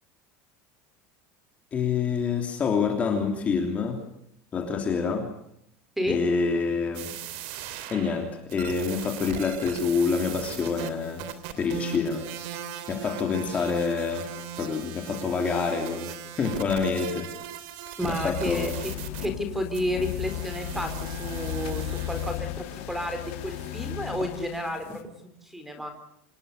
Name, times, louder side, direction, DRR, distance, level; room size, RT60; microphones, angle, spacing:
voice 1, 1.7-4.0 4.5-5.3 6.1-7.1 7.9-11.3 11.6-12.3 12.9-14.3 14.6-17.3 18.0-18.8, left 5 dB, 20° left, 3 dB, 3.2 m, -27 dB
sound 1, 6.9-19.3 19.7-23.9, right 9 dB, 60° right, 3.2 m, -39 dB
voice 2, 18.0-18.9 19.2-25.9, left 1 dB, 5° right, 7 dB, 4.0 m, -31 dB
sound 2, 18.2-25.0, left 15 dB, 70° left, 2.7 m, -35 dB
27.0 x 21.5 x 6.7 m, 0.75 s
cardioid pair, 180°, 7 cm